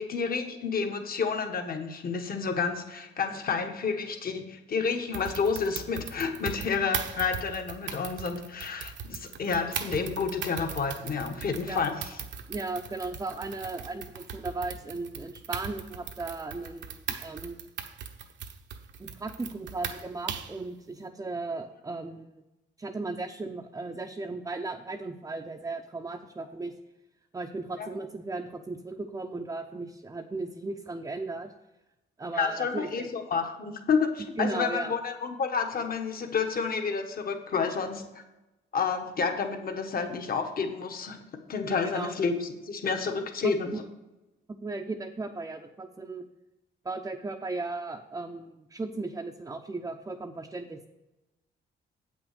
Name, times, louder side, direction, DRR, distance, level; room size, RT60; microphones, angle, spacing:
voice 1, 0.0-12.1 27.8-27.9 32.3-38.0 38.7-41.2 41.5-43.8, left 5 dB, 50° left, 5 dB, 1.3 m, -30 dB
sound 1, 5.1-20.6, right 7 dB, 70° right, 1.0 m, -39 dB
voice 2, 12.5-17.6 19.0-22.3 22.8-26.7 27.3-31.5 32.2-33.1 34.4-34.9 41.6-42.1 43.4-43.5 44.6-46.2 46.8-50.9, right 3 dB, 15° right, 2 dB, 0.6 m, -36 dB
8.1 x 6.1 x 6.7 m, 1.0 s
cardioid pair, 90°, 20 cm